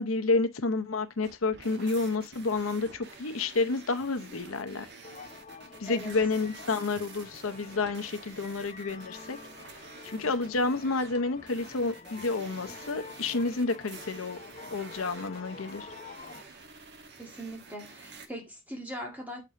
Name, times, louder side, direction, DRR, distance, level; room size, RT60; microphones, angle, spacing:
voice 1, 0.0-4.9 5.8-9.4 10.0-14.4 14.7-15.9, left 3 dB, 90° left, 0.8 m, -30 dB
sound 1, 1.2-18.3, right 4 dB, 55° right, 1.2 m, -49 dB
sound 2, 5.0-16.4, left 4 dB, 35° left, 0.6 m, -48 dB
voice 2, 5.9-6.2 17.2-19.4, equal, 10° right, 1.8 m, -40 dB
6.8 x 4.9 x 3.6 m
head